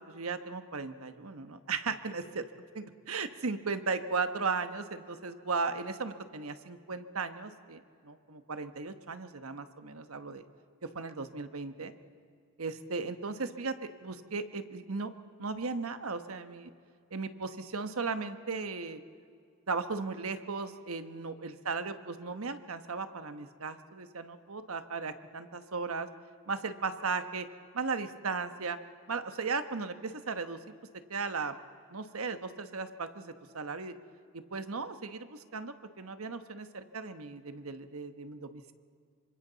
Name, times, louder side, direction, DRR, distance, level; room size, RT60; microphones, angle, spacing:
voice 1, 0.1-2.5 2.7-10.4 10.8-11.9 12.6-13.7 14.0-15.1 15.4-16.7 17.1-19.0 19.7-26.1 26.5-27.5 27.7-28.8 29.1-30.6 31.1-31.6 31.9-33.9 34.3-38.7, right 4 dB, 85° right, 9 dB, 1.2 m, -36 dB
27.0 x 25.0 x 4.0 m, 2.3 s
head